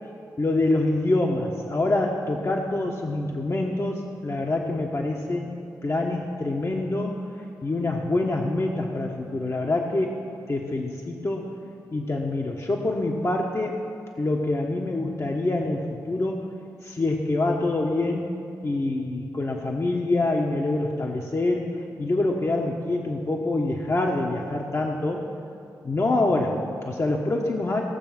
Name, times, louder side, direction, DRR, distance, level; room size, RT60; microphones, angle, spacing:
voice 1, 0.4-5.5 5.8-7.2 7.6-10.2 10.5-11.6 11.9-13.8 14.2-16.5 16.8-18.3 18.6-25.3 25.8-27.8, left 2 dB, 40° left, 0 dB, 1.3 m, -26 dB
18.0 x 6.9 x 6.0 m, 2.5 s
supercardioid pair, 40°, 8 cm